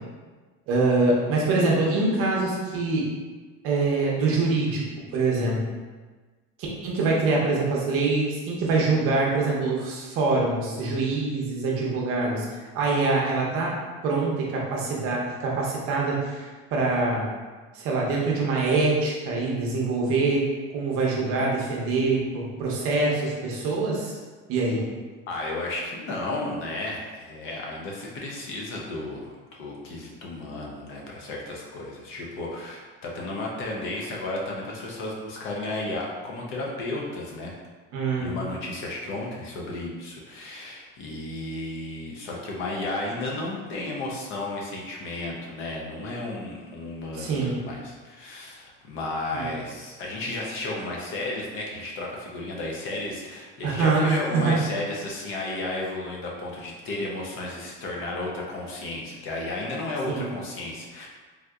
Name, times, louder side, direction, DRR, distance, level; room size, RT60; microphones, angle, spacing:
voice 1, 0.7-3.0 3.6-4.8 5.1-5.6 6.8-12.5 12.7-13.7 14.0-17.3 17.7-20.5 20.7-24.2 24.5-24.8 37.9-38.3 47.1-47.6 49.3-49.5 53.6-54.5 60.1-60.2, right 3 dB, 50° right, -3 dB, 0.7 m, -24 dB
voice 2, 25.3-37.5 38.2-61.1, left 2 dB, 45° left, -2 dB, 0.5 m, -33 dB
3.5 x 2.7 x 2.3 m, 1.3 s
cardioid pair, 175°, 30 cm